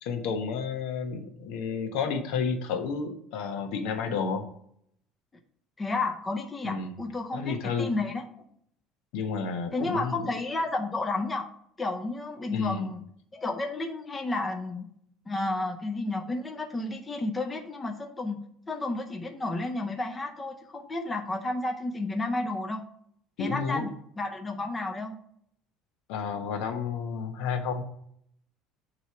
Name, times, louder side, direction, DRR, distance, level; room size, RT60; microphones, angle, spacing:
voice 1, 0.0-4.4 6.6-6.9 7.3-7.9 9.1-10.2 12.5-12.9 23.4-23.9 26.1-27.8, left 5 dB, 75° left, 5 dB, 1.1 m, -31 dB
voice 2, 5.8-8.2 9.7-11.5 11.8-13.0 13.3-14.9 15.3-22.8 23.4-25.2, left 2 dB, 15° left, 4 dB, 0.6 m, -32 dB
8.8 x 3.1 x 6.0 m, 0.68 s
cardioid pair, 160°, 0 cm